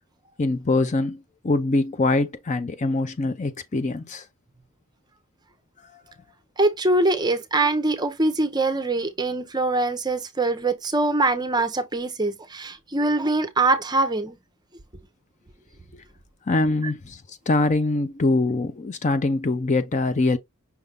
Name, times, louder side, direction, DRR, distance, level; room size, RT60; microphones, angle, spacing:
voice 1, 0.4-4.2 5.9-6.0 16.5-20.4, left 2 dB, 35° left, 0.5 m, -23 dB
voice 2, 6.6-14.4, right 2 dB, 20° right, 0.7 m, -23 dB
5.8 x 2.6 x 3.4 m
head